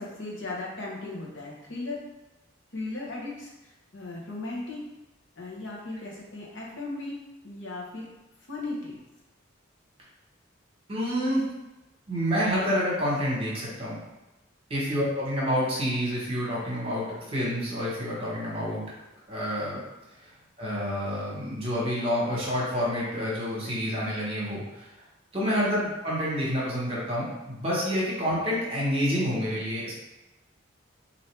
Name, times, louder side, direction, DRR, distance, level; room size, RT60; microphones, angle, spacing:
voice 1, 0.0-2.0 2.7-4.8 5.4-8.1 8.5-9.0 25.8-25.9, left 2 dB, 65° left, -4 dB, 1.0 m, -37 dB
voice 2, 10.9-11.4 12.1-14.0 14.7-18.8 19.3-19.8 20.2-20.3 20.6-24.9 25.3-29.9, equal, 30° right, -6 dB, 1.2 m, -28 dB
4.2 x 2.7 x 3.3 m, 1.0 s
head